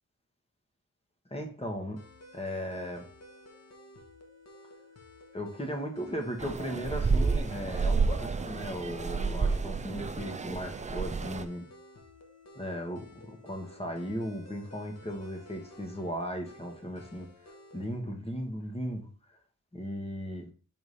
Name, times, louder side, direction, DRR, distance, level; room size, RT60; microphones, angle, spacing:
voice 1, 1.3-2.0 2.3-3.1 5.3-11.7 12.5-17.3 17.7-19.4 19.7-20.5, equal, 20° left, 3 dB, 1.2 m, -37 dB
sound 1, 2.0-18.0, left 1 dB, 55° left, 1.0 m, -54 dB
sound 2, 6.4-11.4, right 4 dB, 25° right, 0.4 m, -30 dB
4.9 x 3.7 x 5.4 m, 0.39 s
wide cardioid pair, 140°, 31 cm